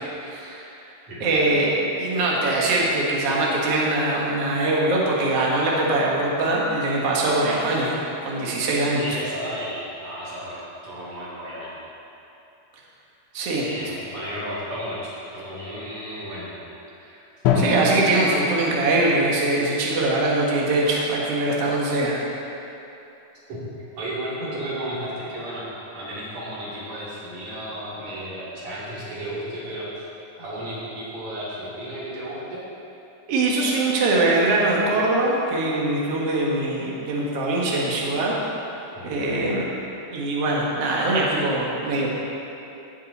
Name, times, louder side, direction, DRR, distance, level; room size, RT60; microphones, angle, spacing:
voice 1, 0.2-0.7 1.2-9.0 13.3-13.6 17.5-22.2 33.3-38.3 39.0-39.7 40.1-42.1, right 2 dB, 85° right, -4 dB, 1.3 m, -22 dB
voice 2, 1.1-1.4 9.0-10.6 10.8-11.7 13.6-16.5 17.0-17.1 23.5-25.7 25.9-30.1 30.4-32.6 38.9-39.5, equal, 45° right, -9 dB, 3.7 m, -33 dB
Drum, 17.5-19.4, left 5 dB, 80° left, 2.9 m, -25 dB
18.5 x 6.3 x 4.1 m, 2.8 s
omnidirectional pair, 5.1 m